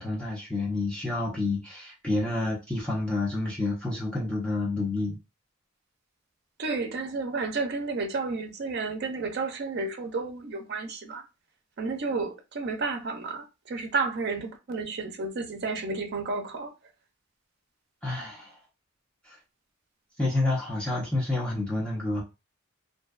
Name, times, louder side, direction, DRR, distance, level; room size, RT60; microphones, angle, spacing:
voice 1, 0.0-5.2 18.0-18.5 20.2-22.2, left 2 dB, 5° left, 0.5 m, -29 dB
voice 2, 6.6-11.2 11.8-16.7, right 3 dB, 55° right, 0.4 m, -31 dB
2.6 x 2.2 x 2.3 m
head